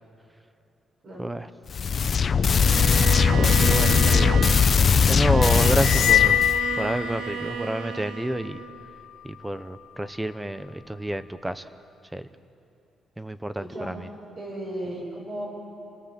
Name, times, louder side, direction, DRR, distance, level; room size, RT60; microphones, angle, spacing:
sound 1, 1.7-6.6, left 6 dB, 40° left, 0.7 m, -20 dB
Bowed string instrument, 2.6-8.8, right 9 dB, 80° right, 0.7 m, -33 dB
voice 1, 3.3-4.3 5.1-6.4 6.8-8.6 9.2-11.6 12.1-12.3 13.2-13.9, right 1 dB, 10° right, 13 dB, 0.7 m, -29 dB
sound 2, 5.8-7.6, left 11 dB, 75° left, 0.6 m, -23 dB
voice 2, 13.6-14.0 14.4-15.5, right 1 dB, 45° right, -3 dB, 7.0 m, -35 dB
28.0 x 18.5 x 7.5 m, 2.7 s
cardioid pair, 150°, 0 cm